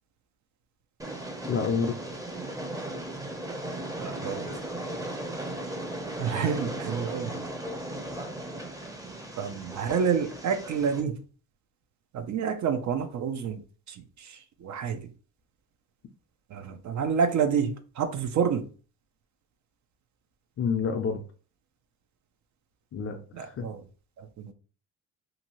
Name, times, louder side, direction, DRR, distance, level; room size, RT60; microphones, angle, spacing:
Train, 1.0-11.0, right 1 dB, 10° right, 0.7 m, -36 dB
voice 1, 1.5-2.0 20.6-21.2 22.9-23.7, left 6 dB, 40° left, 0.5 m, -28 dB
voice 2, 4.0-4.5 6.2-7.4 9.4-11.2 12.1-13.6 13.9-15.0 16.5-18.7 23.3-23.8 24.2-24.5, right 7 dB, 50° right, 0.6 m, -29 dB
2.7 x 2.6 x 3.0 m
supercardioid pair, 75°, 37 cm